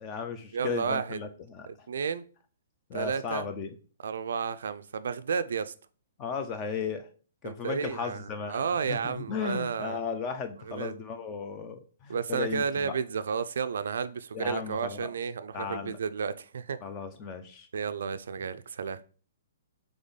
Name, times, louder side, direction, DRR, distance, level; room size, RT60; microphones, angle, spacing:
voice 1, 0.0-1.7 2.9-3.7 6.2-7.1 7.4-12.9 14.3-15.1 15.5-16.0 16.8-17.7, left 6 dB, 15° left, 8 dB, 0.3 m, -35 dB
voice 2, 0.5-1.2 1.7-2.2 2.9-3.5 4.0-5.7 7.4-10.0 10.6-10.9 12.1-16.8 17.7-19.0, right 6 dB, 65° right, 13 dB, 0.3 m, -32 dB
3.6 x 3.4 x 4.0 m, 0.40 s
hypercardioid pair, 175°, 0 cm